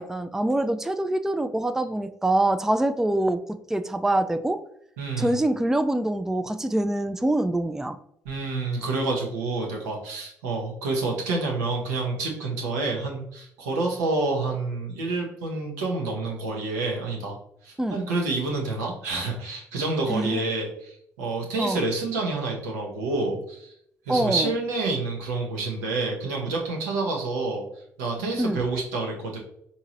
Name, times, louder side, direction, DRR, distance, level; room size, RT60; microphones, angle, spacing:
voice 1, 0.0-3.4 3.7-4.6 5.2-8.0 17.8-18.0 20.1-20.4 21.6-21.8 24.1-24.5 28.4-28.6, right 1 dB, 5° right, 10 dB, 0.3 m, -25 dB
voice 2, 5.0-5.4 8.2-17.4 17.6-23.7 24.1-27.6 28.0-29.4, right 3 dB, 85° right, 0 dB, 0.8 m, -28 dB
4.6 x 2.8 x 2.8 m, 0.70 s
hypercardioid pair, 50°, 9 cm